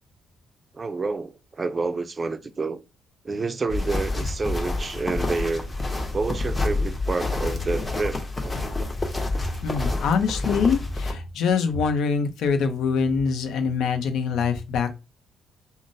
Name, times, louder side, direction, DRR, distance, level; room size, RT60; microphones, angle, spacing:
voice 1, 0.7-2.8 3.2-5.7 6.1-8.6, right 3 dB, 30° right, 0.4 m, -29 dB
sound 1, 3.7-11.1, left 2 dB, 20° left, 0.9 m, -28 dB
voice 2, 9.6-14.9, left 5 dB, 80° left, 0.6 m, -24 dB
3.7 x 2.0 x 2.6 m
cardioid pair, 90°, 0 cm